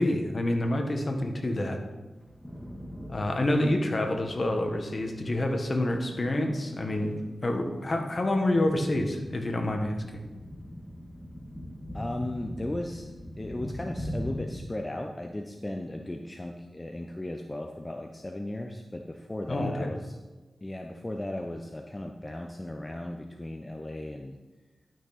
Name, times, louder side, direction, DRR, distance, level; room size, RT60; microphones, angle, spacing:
voice 1, 0.0-1.8 3.1-10.0 19.5-19.9, left 1 dB, 45° left, 4 dB, 1.6 m, -27 dB
muffled thunder, 2.1-14.6, equal, 5° left, 1.7 m, -42 dB
voice 2, 11.9-13.1 13.4-20.2 20.6-24.3, left 1 dB, 20° left, 3 dB, 0.8 m, -36 dB
12.0 x 6.3 x 4.3 m, 1.2 s
cardioid pair, 55°, 0 cm